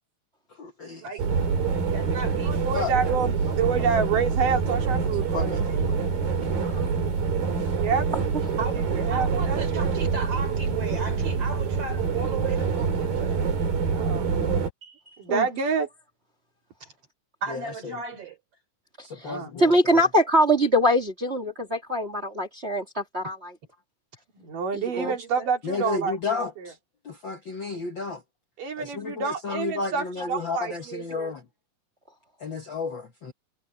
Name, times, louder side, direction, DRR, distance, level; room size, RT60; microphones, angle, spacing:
voice 1, 0.5-1.0 2.7-2.9 5.0-6.0 7.6-7.7 17.5-17.9 19.0-19.7 25.6-26.8 27.0-28.2 28.8-31.4 32.4-33.3, left 4 dB, 60° left, 1.2 m, -32 dB
sound 1, 1.2-14.7, right 5 dB, 85° right, 5.8 m, -26 dB
voice 2, 1.9-2.6 2.9-3.5 8.6-8.8 9.1-13.4 16.8-16.9 17.4-18.4 25.0-25.5, right 4 dB, 45° right, 4.3 m, -36 dB
voice 3, 2.5-5.8 7.7-8.1 8.5-9.8 13.9-14.3 14.8-15.9 19.2-19.5 24.3-26.7 28.6-31.3, right 6 dB, 70° right, 4.7 m, -28 dB
voice 4, 19.6-23.5 24.7-25.2, equal, 25° right, 1.8 m, -23 dB
omnidirectional pair, 4.0 m